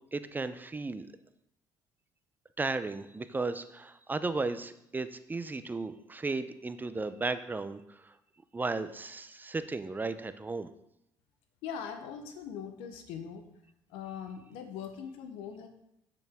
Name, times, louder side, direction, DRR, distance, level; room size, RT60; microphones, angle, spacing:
voice 1, 0.1-1.1 2.6-8.1 8.5-10.7, right 3 dB, 20° right, 12 dB, 0.6 m, -35 dB
voice 2, 11.6-13.4 13.9-15.7, left 7 dB, 85° left, 7 dB, 1.0 m, -41 dB
7.9 x 6.9 x 3.6 m, 0.79 s
supercardioid pair, 75°, 9 cm